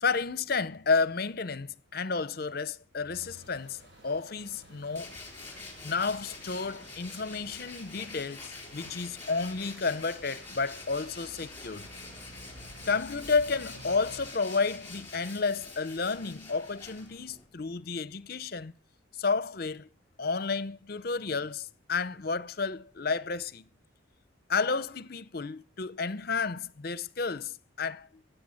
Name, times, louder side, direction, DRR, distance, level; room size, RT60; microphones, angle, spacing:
voice 1, 0.0-3.8 4.0-5.1 5.8-11.9 12.9-18.7 19.2-19.9 20.2-23.6 24.5-28.1, left 4 dB, 50° left, 0.7 m, -31 dB
sound 1, 3.1-14.3, equal, 55° right, 4.3 m, -52 dB
Tools, 4.9-17.4, left 3 dB, 10° left, 4.1 m, -46 dB
17.0 x 8.2 x 8.5 m
head